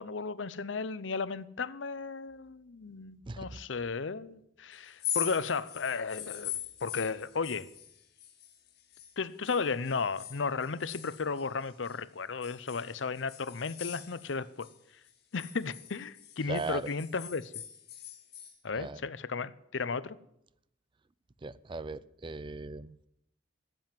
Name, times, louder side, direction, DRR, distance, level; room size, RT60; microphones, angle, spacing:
voice 1, 0.0-7.7 9.2-14.7 15.3-17.5 18.6-20.2, left 4 dB, 80° left, 0.7 m, -34 dB
voice 2, 3.3-3.6 16.5-16.8 18.7-19.0 21.4-23.0, right 3 dB, 25° right, 0.4 m, -38 dB
sound 1, 4.9-9.1 9.4-12.0 12.4-14.8 15.1-18.6, left 11 dB, 60° left, 1.6 m, -42 dB
15.0 x 7.8 x 9.2 m
head